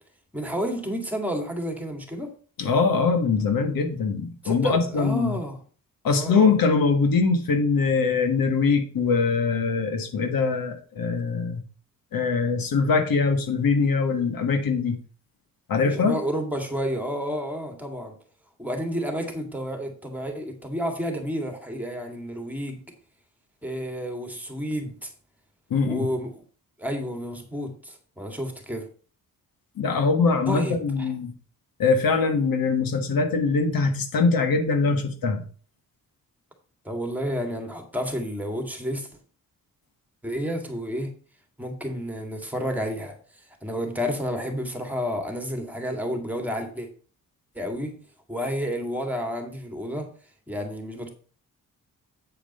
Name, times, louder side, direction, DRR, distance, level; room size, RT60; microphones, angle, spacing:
voice 1, 0.3-2.3 4.4-5.6 6.1-6.5 15.8-18.2 18.6-22.8 23.6-25.1 25.8-26.4 26.8-28.9 30.5-31.1 36.8-39.1 40.2-41.1 41.6-43.2 43.6-46.9 47.6-48.0 48.3-50.1 50.5-51.1, equal, 5° right, 3 dB, 1.9 m, -30 dB
voice 2, 2.6-5.4 6.0-11.6 12.1-15.0 15.7-16.2 25.7-26.1 29.8-31.3 31.8-35.4, left 4 dB, 80° left, 6 dB, 1.5 m, -22 dB
8.6 x 5.1 x 5.4 m, 0.41 s
wide cardioid pair, 115°, 34 cm